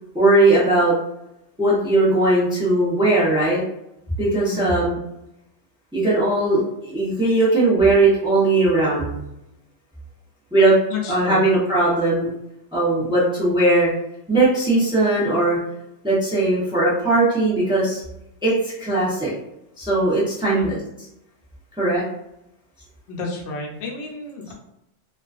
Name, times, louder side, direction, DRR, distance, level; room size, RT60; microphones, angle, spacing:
voice 1, 0.1-0.9 1.6-3.6 4.2-5.0 5.9-9.2 10.5-10.8 11.1-12.3 12.7-13.9 14.3-15.6 16.0-18.0 18.4-19.3 19.8-20.8 21.8-22.0, right 2 dB, 5° right, -7 dB, 0.5 m, -19 dB
voice 2, 10.9-11.4 20.4-20.7 23.1-24.5, left 3 dB, 80° left, 0 dB, 0.9 m, -31 dB
2.3 x 2.2 x 2.4 m, 0.83 s
omnidirectional pair, 1.2 m